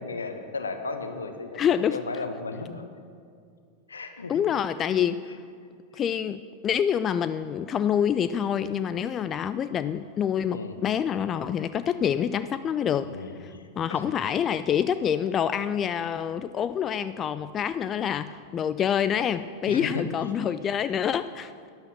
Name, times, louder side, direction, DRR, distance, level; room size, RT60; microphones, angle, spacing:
voice 1, 0.0-2.8 3.9-4.4 10.5-10.8 13.1-14.0 19.7-20.1, left 3 dB, 75° left, 7 dB, 1.2 m, -35 dB
voice 2, 1.6-2.0 4.3-5.2 5.9-13.1 13.8-21.7, left 8 dB, 25° left, 13 dB, 0.3 m, -26 dB
12.5 x 10.5 x 6.3 m, 2.2 s
figure-of-eight pair, 90°, 0 cm